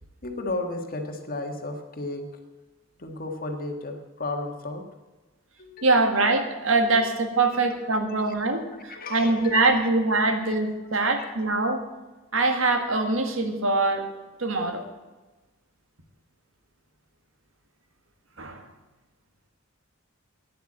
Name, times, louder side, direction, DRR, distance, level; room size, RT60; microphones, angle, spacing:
voice 1, 0.2-2.2 3.0-4.8 5.6-5.9 6.9-7.1 7.5-7.6 7.9-8.0 8.9-9.9 10.2-10.5 11.1-11.3, left 2 dB, 45° left, 4 dB, 1.6 m, -34 dB
voice 2, 5.8-11.8 12.3-14.1 14.4-14.8 18.4-18.6, right 3 dB, 75° right, 5 dB, 1.7 m, -23 dB
9.6 x 8.1 x 8.7 m, 1.2 s
head